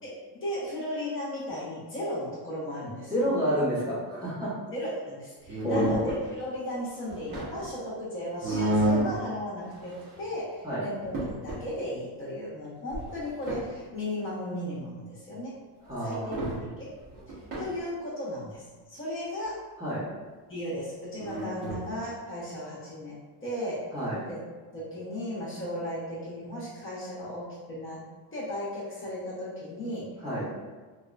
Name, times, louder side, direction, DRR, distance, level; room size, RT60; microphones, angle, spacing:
voice 1, 0.0-3.1 4.7-11.1 11.4-15.6 16.0-16.9 17.6-18.6 18.9-19.6 20.5-23.9 24.3-24.4 24.7-28.1 28.3-30.1, left 1 dB, 25° left, -8 dB, 0.9 m, -35 dB
voice 2, 3.1-4.5 5.6-6.1 10.6-10.8 15.9-16.4 19.8-20.0 23.9-24.2 30.2-30.5, equal, 10° right, -11 dB, 0.9 m, -29 dB
sound 1, 5.4-6.2 6.9-7.7 8.4-9.2 9.7-10.3 10.6-10.7 11.0-11.6 12.9-13.7 15.9-16.0 16.3-16.6 17.0-17.7 21.2-21.9, right 1 dB, 45° right, 1.1 m, -30 dB
3.1 x 2.8 x 2.4 m, 1.4 s
cardioid pair, 140°, 45 cm